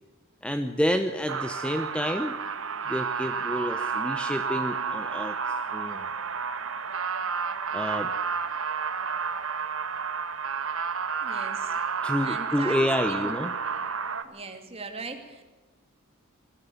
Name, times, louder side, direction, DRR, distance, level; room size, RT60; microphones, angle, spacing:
voice 1, 0.4-2.4 2.9-5.4 5.7-6.0 7.7-8.1 12.0-13.5, equal, 5° left, 8 dB, 0.7 m, -29 dB
sound 1, 1.3-14.2, right 5 dB, 70° right, 1.4 m, -31 dB
voice 2, 11.2-11.8 12.2-13.5 14.2-15.4, right 3 dB, 30° right, 5 dB, 2.5 m, -40 dB
20.5 x 13.5 x 9.4 m, 1.3 s
head